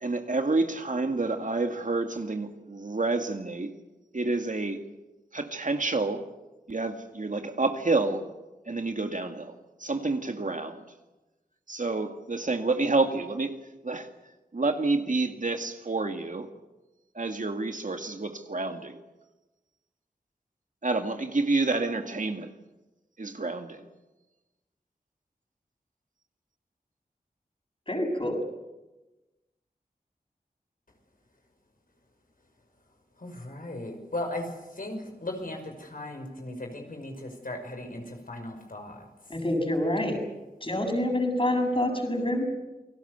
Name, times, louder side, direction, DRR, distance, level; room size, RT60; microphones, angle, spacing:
voice 1, 0.0-3.7 4.1-4.8 5.3-6.2 6.7-8.2 8.7-9.5 9.8-10.8 11.7-13.6 13.8-14.1 14.5-16.5 17.2-19.0 20.8-22.5 23.2-23.8, right 3 dB, 55° right, 2.1 m, -28 dB
voice 2, 27.9-28.4 39.3-40.2 40.6-42.4, left 1 dB, 35° left, 7.5 m, -27 dB
voice 3, 33.2-39.0, left 1 dB, 60° left, 5.8 m, -37 dB
28.5 x 18.5 x 8.2 m
wide cardioid pair, 50°, 16 cm